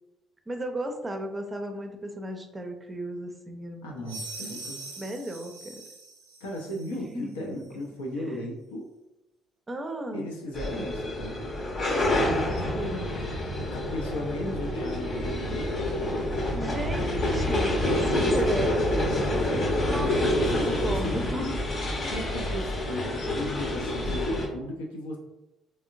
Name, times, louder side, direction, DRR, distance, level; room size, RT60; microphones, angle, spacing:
voice 1, 0.5-4.2 5.0-5.8 6.9-7.6 8.3-8.5 9.7-10.3 12.5-13.2 16.5-18.7 19.8-21.6 22.0-22.1, right 1 dB, 25° right, 4 dB, 0.5 m, -35 dB
voice 2, 3.8-4.8 6.4-8.9 10.1-11.4 13.7-15.6 17.8-18.4 18.9-21.2 22.1-25.2, equal, 75° left, -1 dB, 0.6 m, -36 dB
sound 1, 4.1-7.0, right 2 dB, 75° right, 0.5 m, -42 dB
sound 2, 10.5-24.5, left 1 dB, 45° left, 0.8 m, -27 dB
3.5 x 3.2 x 2.5 m, 0.98 s
figure-of-eight pair, 45°, 0 cm